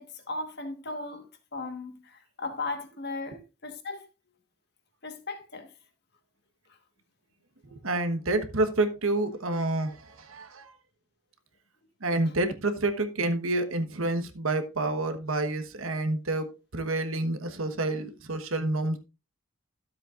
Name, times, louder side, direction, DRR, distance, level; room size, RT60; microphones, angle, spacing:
voice 1, 0.0-4.1 5.0-5.7 6.7-6.8 12.2-12.3, left 3 dB, 50° left, 1.4 m, -37 dB
voice 2, 7.7-10.7 12.0-19.0, right 2 dB, 75° right, 1.2 m, -28 dB
13.0 x 7.6 x 2.5 m
head